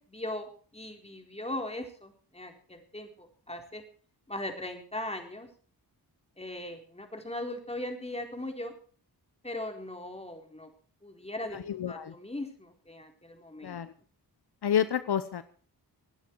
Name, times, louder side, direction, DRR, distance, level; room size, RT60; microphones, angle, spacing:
voice 1, 0.1-3.8 4.3-5.5 6.4-8.7 9.4-10.7 11.0-11.6 11.9-13.8, left 1 dB, 15° left, 3 dB, 4.3 m, -39 dB
voice 2, 11.5-12.1 13.6-13.9 14.6-15.4, left 9 dB, 70° left, 12 dB, 1.0 m, -29 dB
26.0 x 9.7 x 4.7 m, 0.42 s
cardioid pair, 70°, 41 cm